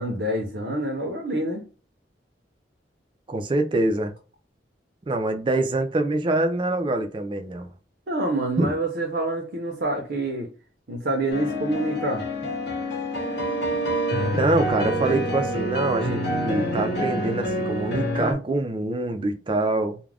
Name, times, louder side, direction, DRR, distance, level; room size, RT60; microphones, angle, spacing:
voice 1, 0.0-1.6 8.1-10.5 10.9-12.3, right 1 dB, 65° right, 0.7 m, -27 dB
voice 2, 3.3-4.1 5.1-7.7 8.6-8.7 14.3-20.0, right 2 dB, 30° right, 0.4 m, -25 dB
sound 1, 11.3-18.3, equal, 75° left, 1.0 m, -27 dB
2.4 x 2.2 x 3.3 m
head